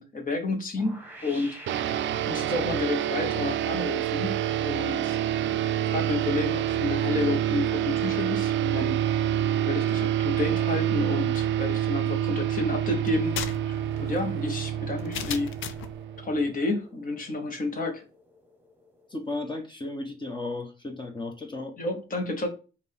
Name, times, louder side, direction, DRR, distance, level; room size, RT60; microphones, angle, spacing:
voice 1, 0.0-1.5 2.0-5.2 5.5-5.6 5.9-9.3 9.7-13.3 13.6-15.5 16.2-18.0 21.8-22.5, left 2 dB, 45° left, 4 dB, 1.5 m, -30 dB
sound 1, 0.8-19.6, right 1 dB, 10° right, 1.4 m, -49 dB
sound 2, 1.7-16.5, right 11 dB, 70° right, 0.4 m, -27 dB
sound 3, 13.1-16.0, left 9 dB, 80° left, 0.6 m, -36 dB
voice 2, 19.1-21.8, left 2 dB, 25° left, 4 dB, 1.0 m, -34 dB
5.0 x 2.7 x 3.5 m, 0.33 s
cardioid pair, 90°, 20 cm